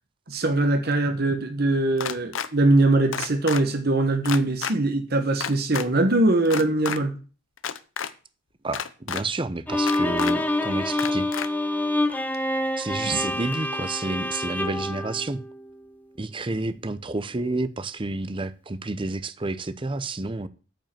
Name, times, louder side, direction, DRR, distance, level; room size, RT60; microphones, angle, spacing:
voice 1, 0.3-7.2 13.0-13.2, right 2 dB, 50° right, 1.1 m, -22 dB
sound 1, 2.0-2.5 3.1-3.6 4.2-4.7 5.4-5.9 6.5-7.0 7.6-8.1 8.7-9.2 9.9-10.3 11.0-11.5, left 7 dB, 70° left, 0.7 m, -30 dB
voice 2, 8.6-11.3 12.8-15.4 16.2-20.5, right 2 dB, 25° right, 0.6 m, -30 dB
Bowed string instrument, 9.7-15.9, left 1 dB, 10° left, 0.9 m, -27 dB
9.0 x 5.4 x 7.5 m
head